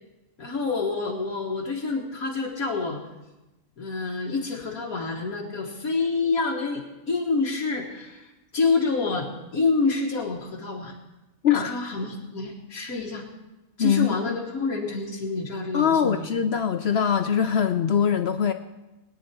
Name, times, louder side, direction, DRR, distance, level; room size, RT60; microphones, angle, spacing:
voice 1, 0.4-3.0 3.8-11.0 11.6-13.3 13.8-16.3, left 4 dB, 80° left, -3 dB, 2.0 m, -27 dB
voice 2, 11.4-11.8 13.8-14.4 15.7-18.5, left 8 dB, 60° left, 8 dB, 0.7 m, -22 dB
22.0 x 9.6 x 4.4 m, 1.0 s
omnidirectional pair, 1.5 m